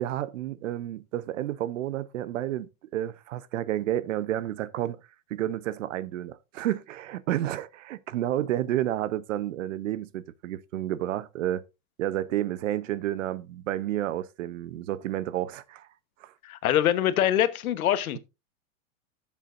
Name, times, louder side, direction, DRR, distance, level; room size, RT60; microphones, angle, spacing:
voice 1, 0.0-5.0 5.3-11.6 12.0-15.9 16.2-16.3, right 13 dB, 65° right, 0.9 m, -30 dB
voice 2, 16.4-18.2, left 11 dB, 85° left, 1.2 m, -24 dB
14.5 x 7.4 x 2.6 m
supercardioid pair, 175°, 42 cm